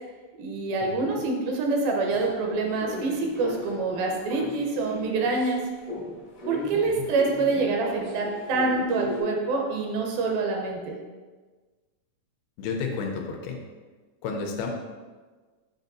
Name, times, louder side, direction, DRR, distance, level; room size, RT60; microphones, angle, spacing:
voice 1, 0.4-5.7 6.5-11.0, right 3 dB, 80° right, 1 dB, 2.5 m, -26 dB
sound 1, 2.1-5.5 5.8-9.2, left 2 dB, 55° left, 0.9 m, -37 dB
voice 2, 12.6-13.6 14.2-14.7, left 5 dB, 85° left, 2 dB, 2.5 m, -31 dB
7.6 x 5.3 x 2.6 m, 1.4 s
omnidirectional pair, 4.4 m